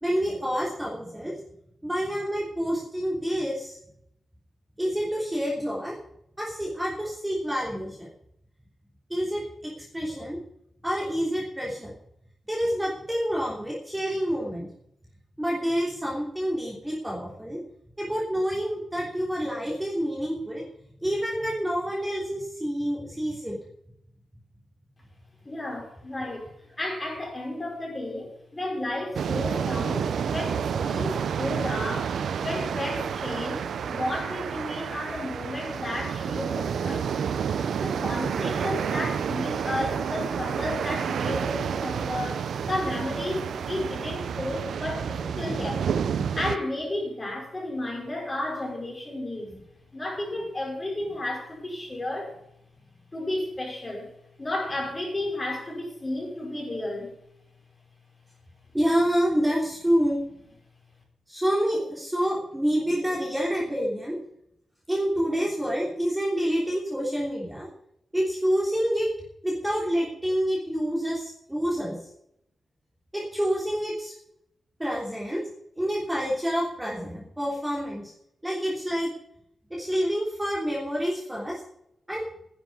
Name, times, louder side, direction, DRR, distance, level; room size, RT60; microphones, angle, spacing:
voice 1, 0.0-1.3 1.8-3.8 4.8-6.0 6.4-8.1 9.1-10.4 10.8-11.9 12.5-14.7 15.4-17.6 18.0-20.6 21.0-23.6 45.4-45.8 49.5-49.6 58.7-60.2 61.3-64.2 64.9-67.7 68.1-69.1 69.4-72.0 73.1-74.1 74.8-75.5 75.8-78.1 78.4-79.1 79.7-81.6 82.1-82.2, equal, 10° right, -5 dB, 3.2 m, -28 dB
voice 2, 25.4-37.5 37.8-45.9 46.3-49.5 49.9-52.4 53.1-54.1 54.4-57.2, left 1 dB, 20° left, -1 dB, 5.1 m, -33 dB
sound 1, 29.1-46.6, right 7 dB, 85° right, 0.6 m, -29 dB
11.0 x 7.7 x 9.4 m, 0.77 s
wide cardioid pair, 120°, 0 cm